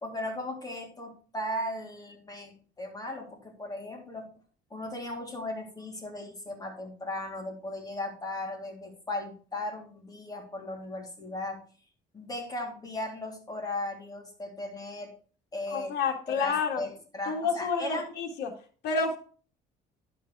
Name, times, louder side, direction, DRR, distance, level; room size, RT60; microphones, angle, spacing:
voice 1, 0.0-4.3 4.7-11.6 12.1-15.1 15.5-15.9 16.3-18.1, left 1 dB, 20° left, 2 dB, 3.4 m, -37 dB
voice 2, 15.7-16.8 17.3-18.5 18.8-19.2, left 5 dB, 80° left, 3 dB, 2.0 m, -29 dB
11.0 x 5.4 x 4.8 m, 0.40 s
cardioid pair, 110°, 17 cm